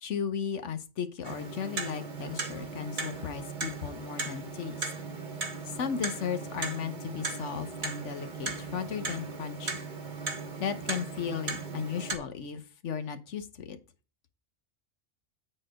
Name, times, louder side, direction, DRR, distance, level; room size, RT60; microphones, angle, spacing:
voice 1, 0.0-4.9 5.6-9.8 10.6-13.8, left 7 dB, 70° left, 9 dB, 1.2 m, -35 dB
Clock, 1.2-12.2, right 4 dB, 40° right, 1.1 m, -37 dB
8.3 x 4.4 x 4.8 m, 0.33 s
omnidirectional pair, 1.3 m